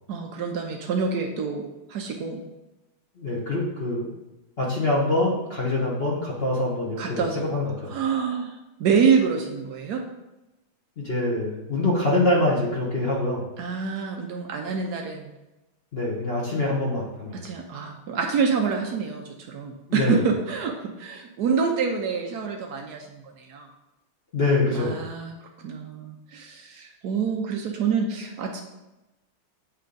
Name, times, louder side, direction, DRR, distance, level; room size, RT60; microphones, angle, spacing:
voice 1, 0.1-2.4 7.0-7.5 7.9-10.0 13.6-15.3 17.4-23.7 24.7-28.6, right 6 dB, 70° right, 2 dB, 0.9 m, -27 dB
voice 2, 3.2-4.1 4.6-7.9 11.0-13.4 15.9-17.4 19.9-20.2 24.3-25.0, left 2 dB, 40° left, -4 dB, 1.0 m, -25 dB
8.4 x 3.3 x 3.9 m, 1.0 s
omnidirectional pair, 2.3 m